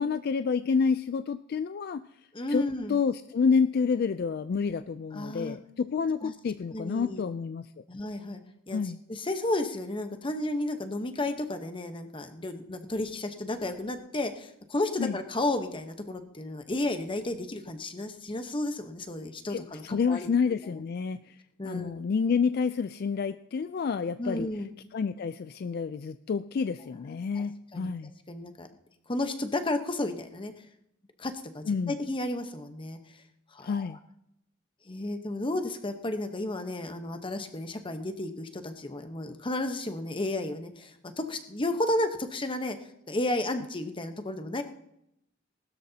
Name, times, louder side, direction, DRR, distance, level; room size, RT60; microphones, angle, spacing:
voice 1, 0.0-2.0 2.5-7.6 8.7-9.0 15.0-15.2 19.5-21.3 21.6-24.5 24.9-28.1 31.7-32.0 33.6-34.0, left 5 dB, 55° left, 11 dB, 0.3 m, -29 dB
voice 2, 2.3-3.0 5.1-5.6 6.2-6.3 6.7-7.2 7.9-8.4 8.7-8.8 9.1-20.3 20.7-20.8 21.6-21.9 24.2-24.7 27.3-27.4 27.7-27.9 28.3-28.7 29.1-30.5 31.2-33.0 33.5-34.0 34.9-42.8 43.1-44.6, left 1 dB, 25° left, 7 dB, 1.0 m, -32 dB
19.5 x 12.5 x 2.8 m, 0.78 s
head